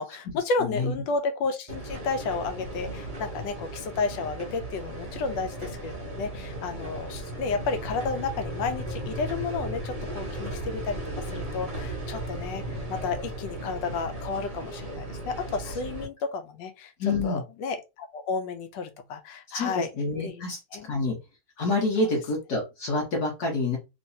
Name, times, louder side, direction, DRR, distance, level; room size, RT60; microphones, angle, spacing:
voice 1, 0.0-11.0 11.3-12.6 12.9-16.9 17.2-19.9 20.2-20.4 20.7-20.9, left 4 dB, 85° left, 1.3 m, -32 dB
voice 2, 0.6-0.9 17.0-17.4 19.5-21.2 21.6-23.8, left 3 dB, 60° left, 1.5 m, -27 dB
sound 1, 1.7-16.0, right 1 dB, 25° right, 1.0 m, -36 dB
3.3 x 3.1 x 2.6 m
omnidirectional pair, 1.9 m